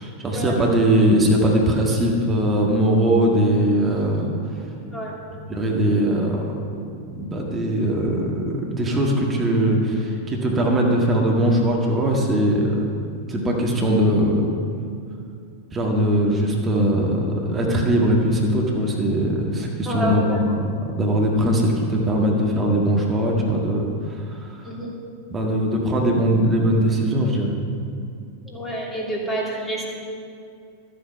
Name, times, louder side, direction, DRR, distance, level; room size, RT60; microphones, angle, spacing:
voice 1, 0.0-4.3 5.5-6.6 7.1-12.8 13.3-14.5 15.7-20.7 21.0-24.6 25.3-27.6, right 1 dB, 20° right, -1 dB, 1.7 m, -20 dB
voice 2, 19.9-20.5 24.6-25.0 28.5-29.9, right 1 dB, 10° left, -3 dB, 2.8 m, -28 dB
13.0 x 8.5 x 5.7 m, 2.4 s
figure-of-eight pair, 90°, 0 cm